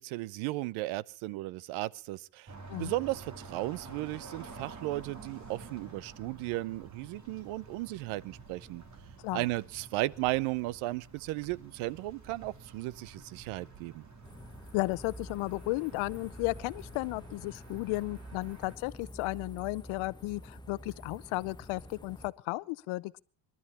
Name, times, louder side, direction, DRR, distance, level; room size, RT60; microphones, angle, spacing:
voice 1, 0.0-8.8 9.3-14.0, right 18 dB, 80° right, 0.8 m, -35 dB
sound 1, 2.5-18.8, right 4 dB, 35° right, 3.8 m, -50 dB
sound 2, 14.2-22.3, equal, 10° left, 1.1 m, -48 dB
voice 2, 14.7-23.2, left 21 dB, 80° left, 0.8 m, -34 dB
26.0 x 12.5 x 4.2 m
supercardioid pair, 90°, 48 cm